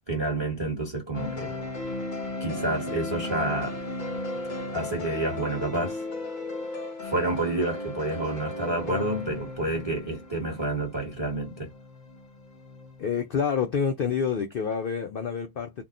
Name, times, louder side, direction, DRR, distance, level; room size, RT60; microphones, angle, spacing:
voice 1, 0.1-1.6 2.4-3.8 4.6-6.0 7.0-11.7, right 2 dB, 20° right, 1.1 m, -29 dB
sound 1, 1.1-13.2, left 2 dB, 40° left, 0.9 m, -36 dB
voice 2, 13.0-15.8, left 6 dB, 65° left, 0.5 m, -28 dB
3.6 x 2.3 x 2.4 m
omnidirectional pair, 1.5 m